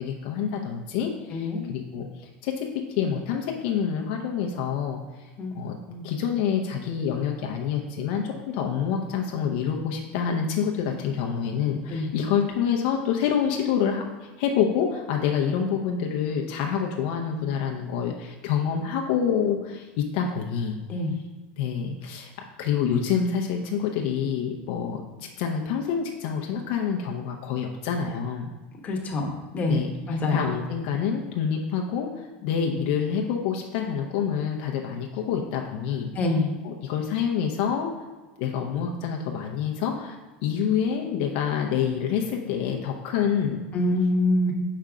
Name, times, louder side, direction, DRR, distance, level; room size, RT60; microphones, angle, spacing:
voice 1, 0.0-5.8 6.0-20.8 21.6-22.3 22.6-28.5 29.7-37.9 38.4-43.6, left 7 dB, 60° left, 1 dB, 0.6 m, -27 dB
voice 2, 1.3-1.6 5.4-5.6 5.9-6.0 11.9-12.1 20.9-21.1 28.8-29.8 30.1-30.4 36.2-36.5 43.7-44.5, left 2 dB, 25° left, 1 dB, 1.0 m, -25 dB
5.5 x 5.0 x 3.6 m, 1.3 s
supercardioid pair, 130°, 5 cm